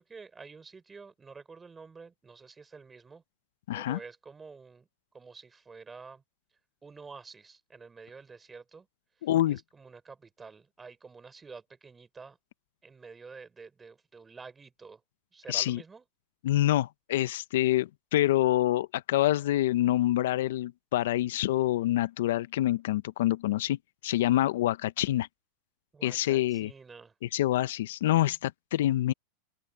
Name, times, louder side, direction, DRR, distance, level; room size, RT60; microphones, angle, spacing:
voice 1, 0.0-3.2 3.7-4.9 5.1-6.2 6.8-8.9 9.2-12.4 12.8-15.0 15.3-16.0 25.9-27.1, right 4 dB, 15° right, 5.5 m, -49 dB
voice 2, 3.7-4.0 9.2-9.6 15.5-15.8 16.4-25.3 26.0-26.7 27.2-29.1, left 14 dB, 80° left, 0.6 m, -26 dB
open air
supercardioid pair, 145°, 0 cm